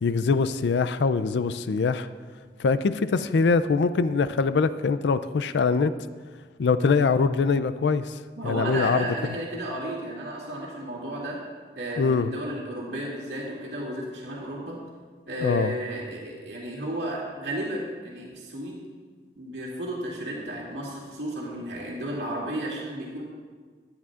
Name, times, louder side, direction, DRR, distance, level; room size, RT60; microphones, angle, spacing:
voice 1, 0.0-2.1 2.6-5.9 6.6-8.2 8.4-9.1 12.0-12.3 15.4-15.7, left 4 dB, 80° left, 13 dB, 0.4 m, -23 dB
voice 2, 8.4-11.4 11.8-14.8 15.3-18.8 19.4-23.2, right 1 dB, 80° right, -4 dB, 2.2 m, -33 dB
15.0 x 10.0 x 2.5 m, 1.5 s
head